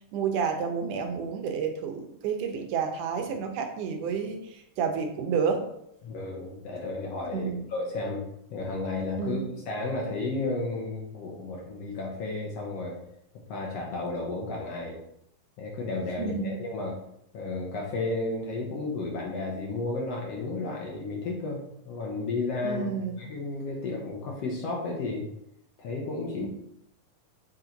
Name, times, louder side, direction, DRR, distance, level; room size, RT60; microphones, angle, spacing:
voice 1, 0.1-5.7 7.3-7.7 9.2-9.5 16.2-16.6 22.6-23.2 26.4-26.5, right 6 dB, 75° right, 4 dB, 2.3 m, -30 dB
voice 2, 6.0-8.2 8.5-12.9 13.5-15.0 15.6-17.0 17.3-25.3 25.8-26.5, left 3 dB, 65° left, -1 dB, 1.7 m, -33 dB
7.6 x 4.3 x 4.0 m, 0.77 s
omnidirectional pair, 3.7 m